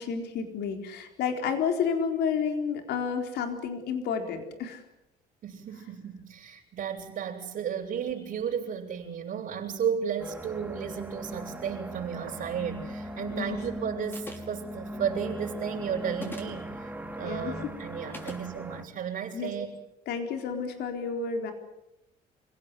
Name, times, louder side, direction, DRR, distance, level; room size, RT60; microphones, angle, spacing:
voice 1, 0.0-4.8 13.3-13.6 17.2-17.5 19.3-19.5 20.1-21.5, left 6 dB, 75° left, 5 dB, 4.1 m, -30 dB
voice 2, 5.4-19.7, right 8 dB, 55° right, -6 dB, 6.6 m, -34 dB
sound 1, 10.2-18.9, equal, 10° right, 2.4 m, -39 dB
sound 2, 14.1-14.6 16.1-16.6 18.1-18.4, left 1 dB, 10° left, 5.5 m, -41 dB
28.0 x 17.5 x 9.7 m, 0.89 s
cardioid pair, 110°, 17 cm